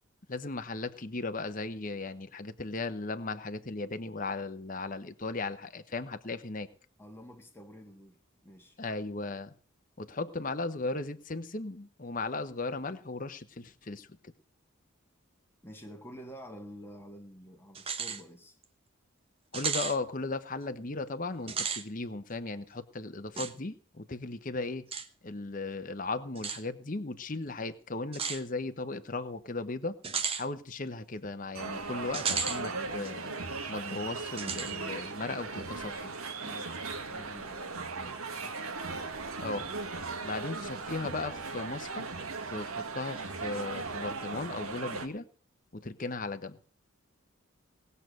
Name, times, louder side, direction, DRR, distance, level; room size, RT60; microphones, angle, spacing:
voice 1, 0.3-6.7 8.8-9.5 10.0-14.3 19.5-24.9 25.2-29.9 30.4-33.3 33.7-36.1 39.4-39.7 40.2-42.1 42.5-45.3 45.7-46.6, left 3 dB, 40° left, 1.0 m, -36 dB
voice 2, 7.0-8.8 15.6-18.6 36.4-38.6, equal, 10° left, 1.5 m, -49 dB
sound 1, 17.8-18.2 18.6-18.7 19.5-20.0 21.4-21.8 23.4-23.5 24.9-25.1 26.4-26.6 28.1-28.4 30.0-30.4 32.1-32.6 33.0-33.1 34.4-34.7, right 6 dB, 25° right, 1.0 m, -33 dB
sound 2, 31.5-45.1, right 4 dB, 80° right, 1.7 m, -38 dB
19.0 x 6.7 x 7.8 m
head